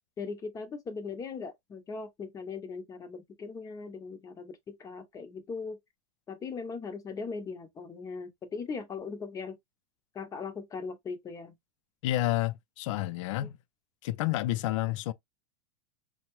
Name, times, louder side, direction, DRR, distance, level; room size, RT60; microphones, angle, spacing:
voice 1, 0.2-5.8 6.3-9.6 10.1-11.5 13.4-13.5, left 5 dB, 20° left, 0.7 m, -39 dB
voice 2, 12.0-13.5 14.0-15.1, left 15 dB, 65° left, 0.4 m, -30 dB
2.8 x 2.1 x 3.0 m
supercardioid pair, 140°, 17 cm